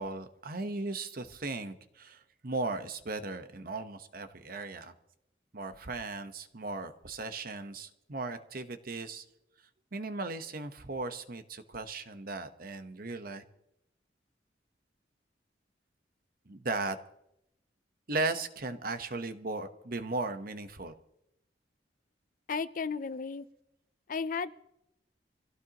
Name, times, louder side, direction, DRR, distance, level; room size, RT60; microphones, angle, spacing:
voice 1, 0.0-4.9 5.5-9.2 9.9-13.4 16.5-17.0 18.1-20.9, right 3 dB, 55° right, 10 dB, 1.1 m, -37 dB
voice 2, 22.5-23.4 24.1-24.6, left 5 dB, 50° left, 14 dB, 0.5 m, -34 dB
25.0 x 16.0 x 3.0 m, 0.82 s
head